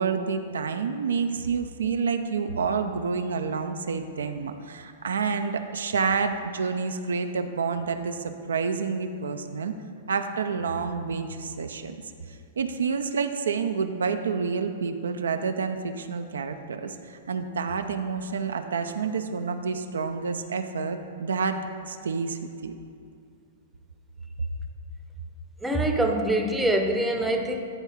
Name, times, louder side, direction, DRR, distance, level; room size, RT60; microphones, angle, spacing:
voice 1, 0.0-9.7 10.1-12.0 12.6-21.6 21.9-22.7, right 5 dB, 85° right, 7 dB, 0.4 m, -28 dB
voice 2, 25.6-27.6, right 1 dB, 5° right, 3 dB, 0.7 m, -24 dB
9.4 x 3.6 x 5.6 m, 2.3 s
hypercardioid pair, 120°, 0 cm